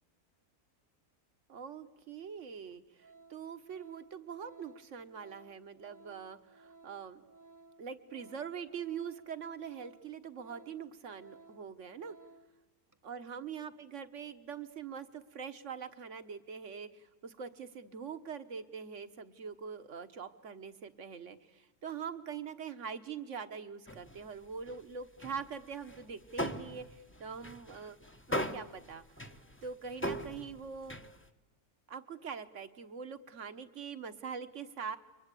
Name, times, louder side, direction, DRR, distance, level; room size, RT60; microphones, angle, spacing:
voice 1, 1.5-7.2 7.8-12.2 13.0-26.8 27.2-28.0 28.3-29.0 29.6-31.0 31.9-35.0, right 6 dB, 55° right, 12 dB, 1.5 m, -43 dB
Organ, 1.9-2.0 2.6-2.7 3.0-12.6 12.9-13.1, right 3 dB, 15° right, 0.8 m, -58 dB
sound 1, 23.9-24.8 25.2-31.3, equal, 10° left, 0.9 m, -40 dB
29.0 x 24.0 x 8.4 m, 1.1 s
omnidirectional pair, 1.6 m